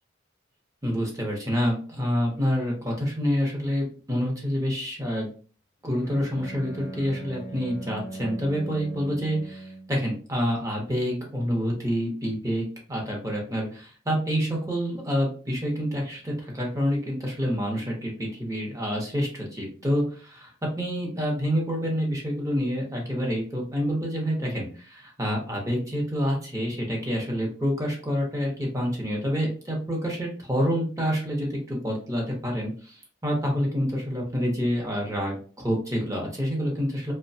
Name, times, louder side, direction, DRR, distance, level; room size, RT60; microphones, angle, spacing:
voice 1, 0.8-5.3 5.8-20.5 20.8-37.1, equal, 15° right, -1 dB, 0.7 m, -27 dB
Bowed string instrument, 6.0-10.0, right 2 dB, 60° left, 0.6 m, -39 dB
2.8 x 2.1 x 2.6 m, 0.40 s
head